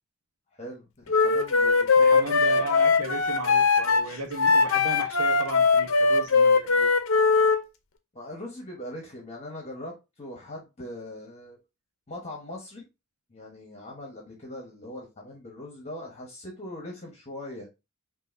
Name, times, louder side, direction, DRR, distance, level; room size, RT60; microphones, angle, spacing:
voice 1, 0.6-2.6 8.1-11.6 12.1-12.8 13.3-17.7, left 1 dB, 30° left, 1.1 m, -41 dB
Wind instrument woodwind instrument, 1.1-7.6, left 4 dB, 65° left, 0.7 m, -21 dB
voice 2, 2.0-6.9, right 2 dB, 90° right, 1.0 m, -36 dB
5.5 x 2.7 x 2.6 m
head